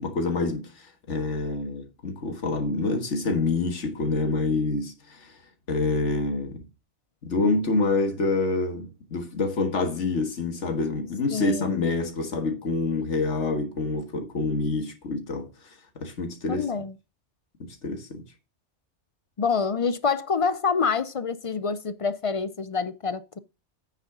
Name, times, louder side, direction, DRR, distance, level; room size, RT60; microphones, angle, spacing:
voice 1, 0.0-5.3 5.7-6.6 7.2-15.5 16.0-16.7 17.6-18.2, left 3 dB, 80° left, 1.9 m, -27 dB
voice 2, 11.3-11.8 16.5-16.9 19.4-23.4, left 5 dB, 50° left, 0.4 m, -27 dB
9.1 x 6.7 x 3.7 m
omnidirectional pair, 1.2 m